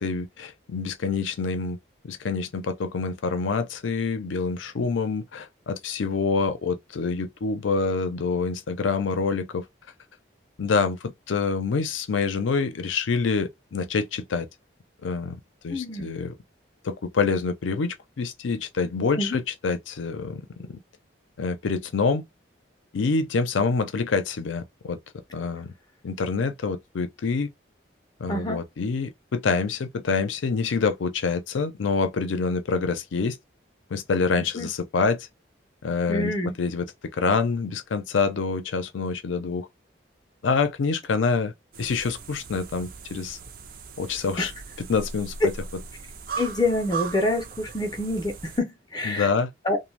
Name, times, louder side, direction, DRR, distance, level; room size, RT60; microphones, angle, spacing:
voice 1, 0.0-1.8 2.0-9.6 10.6-14.5 15.0-16.4 16.8-20.4 20.7-20.8 21.4-22.2 22.9-25.0 25.3-25.7 26.0-27.5 28.2-33.4 33.9-35.2 35.8-36.9 37.2-39.7 40.4-41.5 41.8-43.4 44.0-44.5 44.8-45.5 49.0-49.5, left 4 dB, 90° left, 0.5 m, -26 dB
voice 2, 15.7-16.1 19.2-19.4 28.3-28.6 34.6-34.7 36.1-36.6 44.4-44.5 46.4-49.3 49.6-49.8, left 1 dB, 20° left, 0.4 m, -27 dB
sound 1, 41.7-48.6, right 5 dB, 50° right, 0.4 m, -38 dB
2.5 x 2.1 x 3.1 m
head